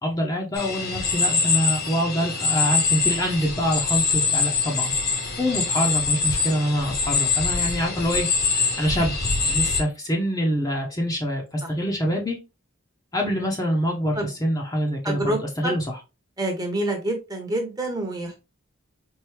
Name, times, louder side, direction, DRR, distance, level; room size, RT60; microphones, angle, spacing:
voice 1, 0.0-4.9 5.4-9.1 9.4-12.4 13.1-16.0, equal, 15° left, -1 dB, 0.7 m, -25 dB
sound 1, 0.6-9.8, left 4 dB, 50° left, 1.0 m, -24 dB
voice 2, 15.0-15.7 16.4-18.4, right 1 dB, 20° right, 3 dB, 0.9 m, -27 dB
4.5 x 2.6 x 3.3 m, 0.27 s
head